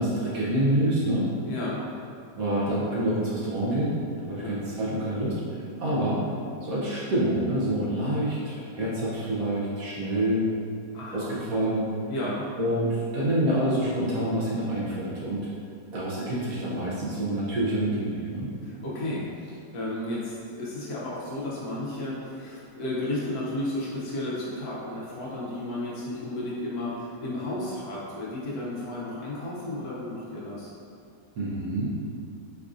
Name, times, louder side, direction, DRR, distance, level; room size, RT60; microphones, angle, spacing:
voice 1, 0.0-1.3 2.4-6.2 6.6-10.5 11.1-11.9 12.6-15.5 15.9-18.5 31.4-32.0, right 1 dB, 70° right, -7 dB, 0.9 m, -27 dB
voice 2, 1.4-1.8 4.4-4.5 10.9-11.3 12.1-12.4 18.6-30.7, left 1 dB, 70° left, -6 dB, 1.1 m, -33 dB
4.7 x 2.5 x 2.4 m, 2.4 s
omnidirectional pair, 1.9 m